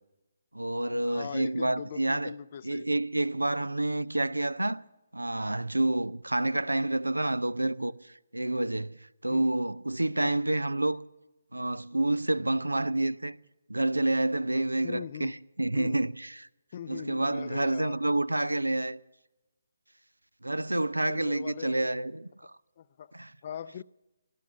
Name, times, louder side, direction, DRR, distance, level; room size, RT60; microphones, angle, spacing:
voice 1, 0.5-2.3 2.6-4.8 5.1-9.0 9.2-11.0 11.5-13.4 13.7-16.5 16.9-19.0 20.4-22.5 23.1-23.3, right 2 dB, 80° right, 0.5 m, -28 dB
voice 2, 1.0-2.9 9.3-9.5 10.2-10.4 14.8-15.3 15.7-16.0 16.7-18.0 21.1-21.9 22.8-23.2 23.4-23.8, left 9 dB, 40° left, 0.4 m, -41 dB
17.5 x 11.5 x 6.9 m
figure-of-eight pair, 140°, 0 cm